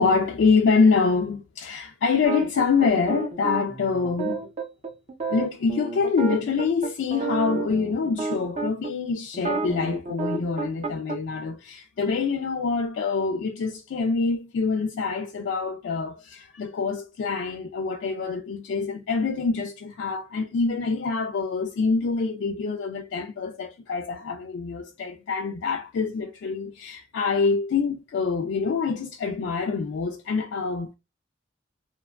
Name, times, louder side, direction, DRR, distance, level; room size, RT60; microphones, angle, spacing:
voice 1, 0.0-4.4 5.3-30.9, left 4 dB, 70° left, 0.3 m, -25 dB
sound 1, 2.2-8.9 9.3-11.2, right 3 dB, 35° right, 0.5 m, -30 dB
2.8 x 2.2 x 2.3 m
head